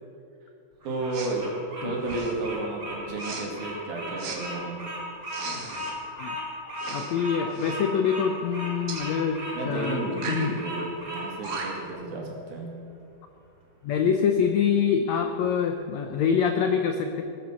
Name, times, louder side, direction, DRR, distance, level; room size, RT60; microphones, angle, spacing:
Bird vocalization bird call bird song, 0.8-11.7, equal, 25° right, 3.5 m, -36 dB
voice 1, 0.8-1.5 1.8-4.9 9.5-12.7, right 2 dB, 85° right, -1 dB, 4.3 m, -32 dB
Respiratory sounds, 1.1-1.4 2.0-2.5 3.2-3.5 4.2-4.4 5.3-6.0 6.8-7.2 7.5-7.8 8.9-9.1 10.1-10.5 11.1-11.2 11.4-11.9, right 5 dB, 60° right, 2.8 m, -37 dB
voice 2, 6.9-9.4 9.6-10.5 13.8-17.2, left 7 dB, 80° left, 5 dB, 1.5 m, -25 dB
19.5 x 10.0 x 6.3 m, 2.6 s
omnidirectional pair, 4.1 m